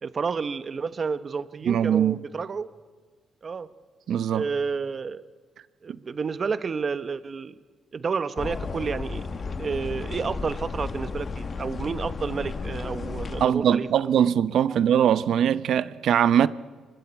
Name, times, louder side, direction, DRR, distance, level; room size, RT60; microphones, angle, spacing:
voice 1, 0.0-2.7 3.4-3.7 4.3-5.2 5.8-7.5 7.9-13.9, right 5 dB, 40° right, 1.2 m, -30 dB
voice 2, 1.7-2.2 4.1-4.4 13.4-16.5, right 9 dB, 70° right, 0.8 m, -21 dB
sound 1, 8.4-13.5, left 4 dB, 40° left, 1.4 m, -33 dB
26.0 x 23.0 x 8.4 m
cardioid pair, 90°, 0 cm